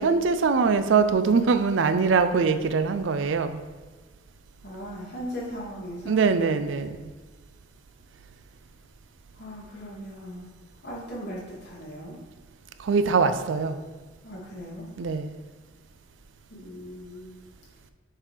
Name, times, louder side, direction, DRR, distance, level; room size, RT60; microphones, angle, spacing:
voice 1, 0.0-3.6 6.1-7.1 12.8-13.8 15.0-15.3, right 5 dB, 70° right, 11 dB, 0.4 m, -23 dB
voice 2, 4.6-6.3 9.4-10.5 10.8-12.2 14.2-14.9 16.5-17.4, equal, 60° left, -6 dB, 2.2 m, -38 dB
7.3 x 3.4 x 5.0 m, 1.3 s
head